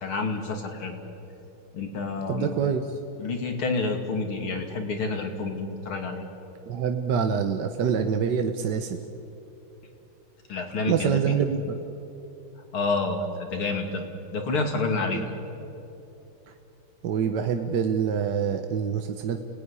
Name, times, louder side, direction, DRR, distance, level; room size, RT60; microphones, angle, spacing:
voice 1, 0.0-1.0 1.7-2.6 3.2-6.2 10.5-11.3 12.7-14.0 14.3-15.3, left 3 dB, 85° left, 3 dB, 3.4 m, -29 dB
voice 2, 2.3-2.8 6.7-9.0 10.9-11.8 15.1-15.3 17.0-19.4, right 7 dB, 60° right, 6 dB, 1.5 m, -26 dB
29.0 x 19.0 x 9.8 m, 2.9 s
omnidirectional pair, 2.3 m